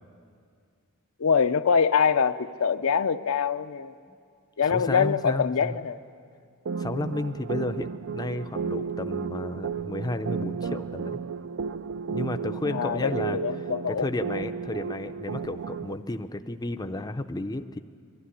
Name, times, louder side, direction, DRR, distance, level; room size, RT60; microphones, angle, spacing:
voice 1, 1.2-3.9 4.6-6.0 12.7-14.1, left 6 dB, 75° left, 10 dB, 0.6 m, -24 dB
voice 2, 4.6-5.8 6.8-11.2 12.1-13.4 13.9-17.8, left 2 dB, 20° left, 7 dB, 0.5 m, -32 dB
sound 1, 6.7-15.9, right 6 dB, 60° right, 0.4 m, -33 dB
22.5 x 13.0 x 9.7 m, 2.2 s
head